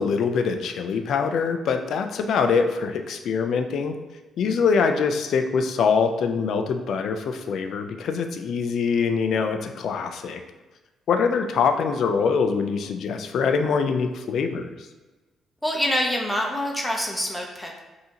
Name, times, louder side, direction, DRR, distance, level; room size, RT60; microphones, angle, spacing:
voice 1, 0.0-4.0 4.4-10.4 11.1-14.7, left 5 dB, 70° left, 6 dB, 0.4 m, -24 dB
voice 2, 15.6-17.8, left 1 dB, 5° left, 0 dB, 0.7 m, -26 dB
5.4 x 2.7 x 2.9 m, 1.2 s
cardioid pair, 90°, 0 cm